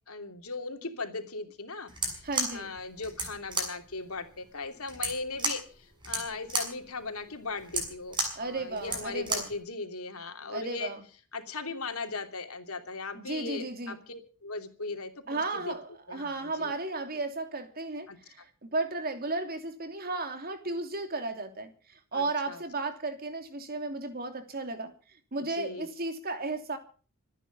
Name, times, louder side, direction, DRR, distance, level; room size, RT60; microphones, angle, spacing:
voice 1, 0.1-10.9 11.3-15.7 16.1-16.7 18.1-18.2 22.1-22.6 25.5-25.9, left 3 dB, 90° left, 6 dB, 2.9 m, -38 dB
sound 1, 1.9-9.6, right 2 dB, 20° right, 6.9 m, -34 dB
voice 2, 2.2-2.7 8.4-9.5 10.5-11.0 13.1-14.0 15.3-21.7 22.1-24.9 25.3-26.8, right 3 dB, 45° right, 7 dB, 2.9 m, -34 dB
26.5 x 9.9 x 5.4 m, 0.40 s
head